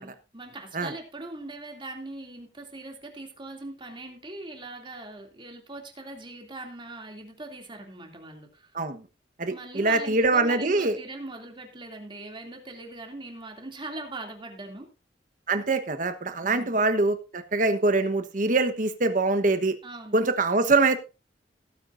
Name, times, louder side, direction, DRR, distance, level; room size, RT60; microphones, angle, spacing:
voice 1, 0.0-8.7 9.5-14.9 16.4-16.8 19.8-20.2, right 2 dB, 30° right, 3 dB, 2.7 m, -41 dB
voice 2, 9.4-11.0 15.5-19.7 20.1-21.0, right 3 dB, 50° right, 9 dB, 1.1 m, -24 dB
17.5 x 9.1 x 2.6 m, 0.29 s
head